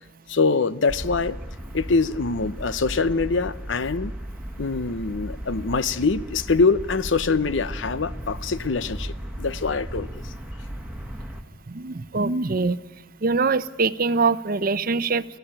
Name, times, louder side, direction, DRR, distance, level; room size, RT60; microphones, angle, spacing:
voice 1, 0.3-1.4 1.7-4.1 4.6-10.1, left 4 dB, 80° left, 0.8 m, -24 dB
sound 1, 0.9-11.4, equal, 5° right, 1.6 m, -36 dB
voice 2, 11.7-12.8 13.2-15.2, right 4 dB, 50° right, 0.7 m, -23 dB
24.5 x 16.0 x 8.9 m
head